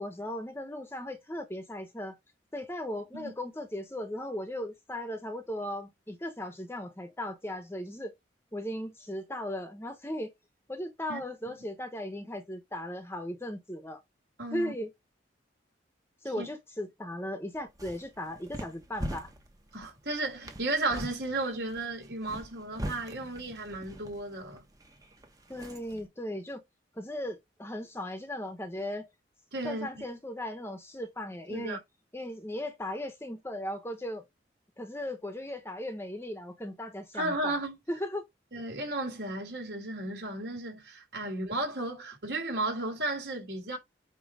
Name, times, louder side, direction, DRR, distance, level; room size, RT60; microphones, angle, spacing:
voice 1, 0.0-2.2 2.5-8.1 8.5-10.3 10.7-14.0 14.5-14.9 16.2-19.3 25.5-26.6 26.9-29.1 29.6-31.8 32.1-34.2 34.8-37.6 37.9-38.2, left 1 dB, 15° left, 1.1 m, -37 dB
voice 2, 11.1-11.5 14.4-14.7 16.4-16.5 19.7-24.6 29.5-30.0 31.5-31.8 37.1-37.8 38.5-43.8, right 2 dB, 60° right, 3.7 m, -34 dB
sound 1, 17.5-26.1, right 1 dB, 20° right, 1.2 m, -43 dB
8.9 x 3.1 x 4.9 m
head